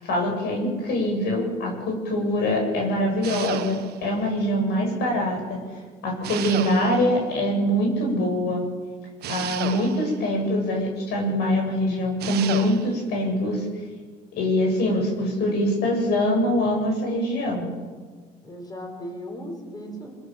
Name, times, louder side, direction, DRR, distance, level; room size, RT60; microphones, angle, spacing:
voice 1, 0.0-5.6 6.0-8.6 9.3-13.7 14.4-17.6, left 1 dB, 75° left, 1 dB, 7.9 m, -24 dB
sound 1, 3.2-4.1 6.2-7.2 9.2-10.2 12.2-13.0, right 12 dB, 70° right, 1.3 m, -33 dB
voice 2, 18.4-20.1, equal, 25° left, 1 dB, 6.3 m, -37 dB
23.5 x 22.0 x 7.5 m, 1.5 s
cardioid pair, 110°, 17 cm